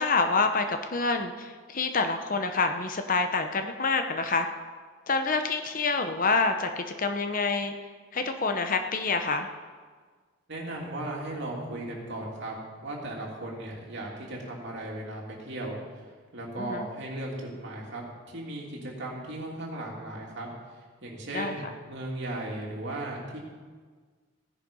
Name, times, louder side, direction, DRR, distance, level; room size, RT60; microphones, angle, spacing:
voice 1, 0.0-4.5 5.1-7.7 8.1-9.5 16.6-16.9 21.3-21.5, left 4 dB, 40° left, 7 dB, 0.9 m, -27 dB
voice 2, 10.5-12.5 12.8-15.8 16.3-20.5 21.0-23.4, right 1 dB, 55° right, -2 dB, 3.0 m, -36 dB
16.0 x 10.0 x 5.5 m, 1.5 s
head